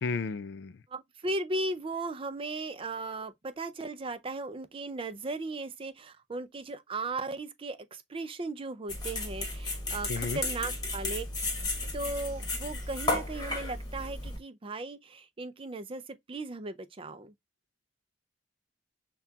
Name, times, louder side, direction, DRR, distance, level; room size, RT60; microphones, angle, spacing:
voice 1, 0.0-0.7 10.1-10.4, left 4 dB, 70° left, 0.4 m, -33 dB
voice 2, 0.9-11.2 11.9-17.3, right 2 dB, 30° right, 0.5 m, -37 dB
sound 1, 8.9-14.4, left 2 dB, 25° left, 1.2 m, -34 dB
5.8 x 2.3 x 2.7 m
head